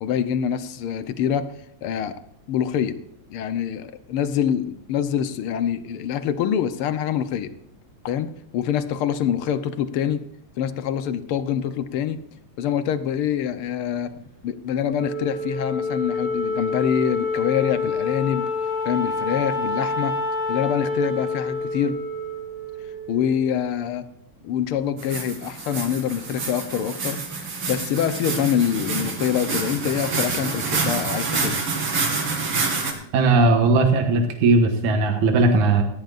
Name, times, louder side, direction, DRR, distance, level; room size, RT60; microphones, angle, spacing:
voice 1, 0.0-1.4 1.8-2.2 2.5-2.9 3.3-7.5 8.0-10.2 10.6-12.2 12.6-14.1 14.4-18.4 18.8-20.1 20.5-22.0 23.1-24.0 24.4-27.2 27.7-31.6, left 9 dB, 70° left, 11 dB, 1.3 m, -25 dB
Wind instrument woodwind instrument, 14.9-23.5, left 3 dB, 50° left, 6.6 m, -27 dB
sound 1, 25.0-32.9, right 4 dB, 45° right, 3.3 m, -27 dB
voice 2, 33.1-35.8, right 3 dB, 80° right, 4 dB, 2.8 m, -18 dB
18.0 x 15.0 x 2.5 m, 0.76 s
omnidirectional pair, 3.4 m